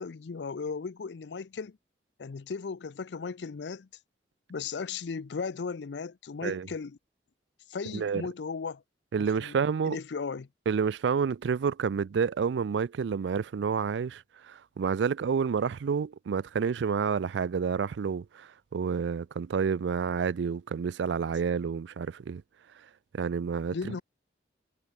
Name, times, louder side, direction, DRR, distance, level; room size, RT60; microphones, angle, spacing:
voice 1, 0.0-1.8 2.2-3.9 4.5-7.0 7.7-8.8 9.3-9.6 9.8-10.5 23.7-24.0, left 5 dB, 80° left, 0.5 m, -36 dB
voice 2, 9.1-10.0 10.7-22.4 23.1-24.0, right 6 dB, 85° right, 0.4 m, -29 dB
head